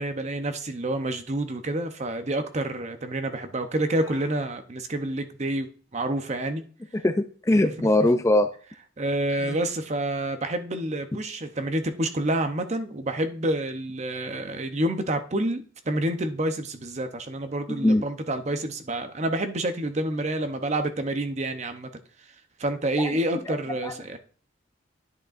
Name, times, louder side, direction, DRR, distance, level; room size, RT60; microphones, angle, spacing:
voice 1, 0.0-6.6 9.0-21.9 22.6-24.2, right 1 dB, 35° right, 7 dB, 0.7 m, -28 dB
Meow, 3.7-4.5, left 3 dB, 75° left, 1.8 m, -48 dB
voice 2, 6.9-8.5 9.4-9.5 17.8-18.0 23.0-23.1 23.5-23.6 23.8-24.2, left 1 dB, 15° left, 8 dB, 0.4 m, -22 dB
10.5 x 6.4 x 2.5 m, 0.42 s
head